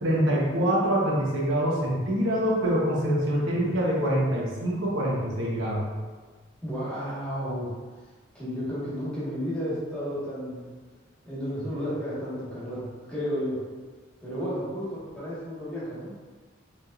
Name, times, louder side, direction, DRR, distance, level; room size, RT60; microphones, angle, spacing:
voice 1, 0.0-5.8, equal, 75° right, -4 dB, 1.0 m, -25 dB
voice 2, 3.3-3.7 6.6-7.7 8.3-10.6 11.2-13.6 14.2-16.1, equal, 5° left, -10 dB, 1.5 m, -32 dB
5.2 x 3.5 x 2.5 m, 1.4 s
head